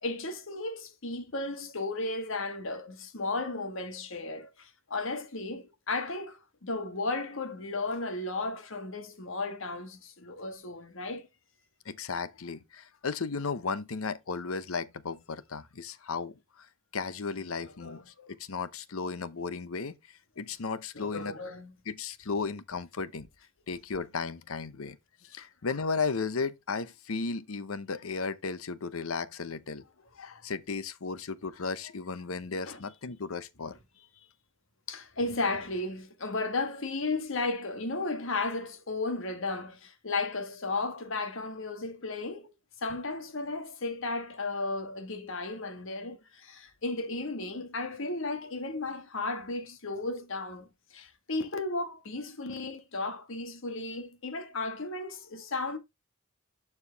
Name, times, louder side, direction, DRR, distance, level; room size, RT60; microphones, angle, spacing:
voice 1, 0.0-11.3 17.4-17.5 17.8-18.0 20.9-21.7 32.6-32.8 34.9-42.5 42.8-55.8, left 3 dB, 70° left, 1.5 m, -34 dB
voice 2, 11.8-16.7 16.9-21.4 21.9-23.3 23.7-25.0 25.2-29.8 30.2-33.8, left 4 dB, 85° left, 0.8 m, -35 dB
11.5 x 4.6 x 3.4 m
head